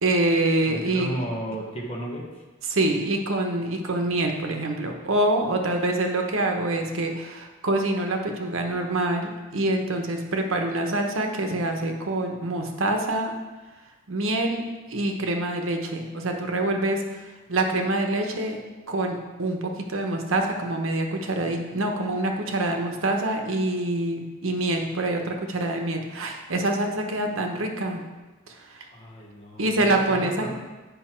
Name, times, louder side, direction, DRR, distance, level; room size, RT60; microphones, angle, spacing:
voice 1, 0.0-1.1 2.7-13.4 14.1-14.6 14.9-17.0 17.5-18.6 18.9-28.0 28.5-28.9 29.6-30.5, right 2 dB, 80° right, 3 dB, 1.0 m, -26 dB
voice 2, 0.6-2.4 6.6-6.7 28.9-30.5, right 1 dB, 30° left, -2 dB, 1.2 m, -34 dB
8.0 x 5.3 x 4.4 m, 1.2 s
head